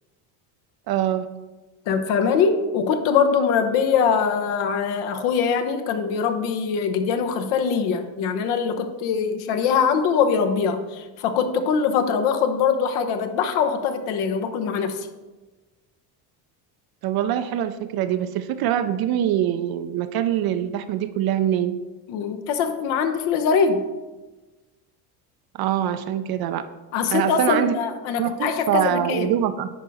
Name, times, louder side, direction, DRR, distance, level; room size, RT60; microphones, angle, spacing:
voice 1, 0.9-1.3 17.0-21.8 25.5-26.6 27.1-27.7 28.2-29.7, right 11 dB, 50° right, 11 dB, 0.5 m, -24 dB
voice 2, 1.9-15.0 22.1-23.8 26.9-29.3, left 6 dB, 70° left, 7 dB, 1.0 m, -22 dB
9.9 x 4.6 x 4.0 m, 1.2 s
supercardioid pair, 100°, 49 cm